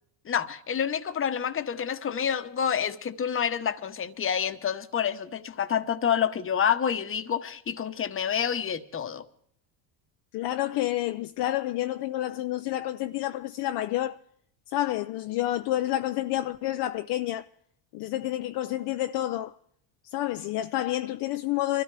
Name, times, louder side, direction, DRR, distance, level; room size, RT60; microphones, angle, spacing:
voice 1, 0.3-9.2, left 8 dB, 25° left, 1.0 m, -28 dB
voice 2, 10.3-14.2 14.7-17.5 17.9-19.5 20.1-21.8, left 14 dB, 55° left, 0.6 m, -29 dB
25.5 x 13.5 x 3.3 m
supercardioid pair, 105°, 49 cm